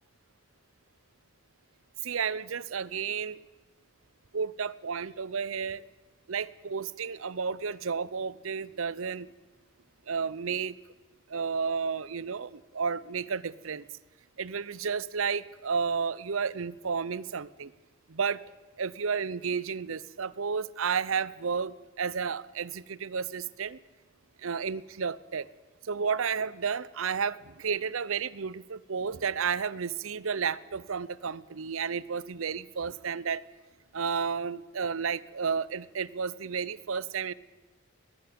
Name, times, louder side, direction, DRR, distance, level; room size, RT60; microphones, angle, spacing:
voice 1, 2.0-3.4 4.3-5.8 6.3-9.3 10.1-10.8 11.3-13.8 14.4-17.7 18.1-18.4 18.8-23.8 24.4-25.5 25.8-33.4 33.9-37.3, right 6 dB, 75° right, 20 dB, 0.7 m, -32 dB
21.0 x 15.0 x 8.6 m, 1.2 s
head